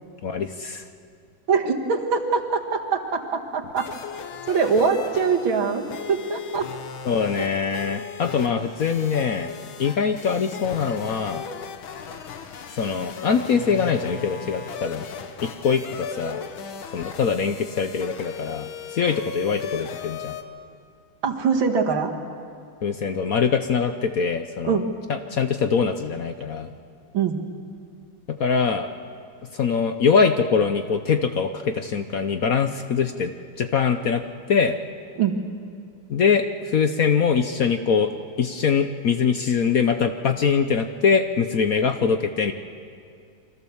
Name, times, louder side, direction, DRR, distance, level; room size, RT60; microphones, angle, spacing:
voice 1, 0.2-0.8 7.0-9.5 9.8-11.4 12.7-15.1 15.4-16.4 16.9-20.4 22.8-24.8 25.1-26.7 28.3-28.9 29.5-33.3 33.6-34.2 34.5-34.8 36.1-38.1 38.4-42.5, left 6 dB, 55° left, 8 dB, 1.0 m, -23 dB
voice 2, 1.5-3.9 4.5-6.7 21.2-22.1 24.6-24.9 27.1-27.4 35.2-35.4, right 5 dB, 80° right, 2 dB, 2.6 m, -23 dB
sound 1, 3.8-20.4, left 6 dB, 85° left, 2.1 m, -37 dB
29.0 x 24.0 x 7.2 m, 2.4 s
omnidirectional pair, 2.2 m